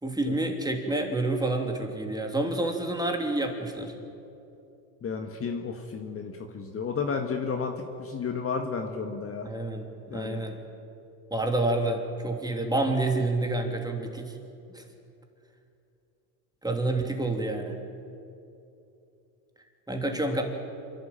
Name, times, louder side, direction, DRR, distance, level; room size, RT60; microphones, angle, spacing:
voice 1, 0.0-3.9 9.4-10.6 11.3-14.3 14.7-14.8 16.6-17.8 19.9-20.4, right 2 dB, 10° right, 3 dB, 3.1 m, -28 dB
voice 2, 5.0-9.5 10.1-10.4, left 5 dB, 30° left, 4 dB, 1.7 m, -32 dB
27.5 x 11.5 x 9.1 m, 2.7 s
supercardioid pair, 100°, 46 cm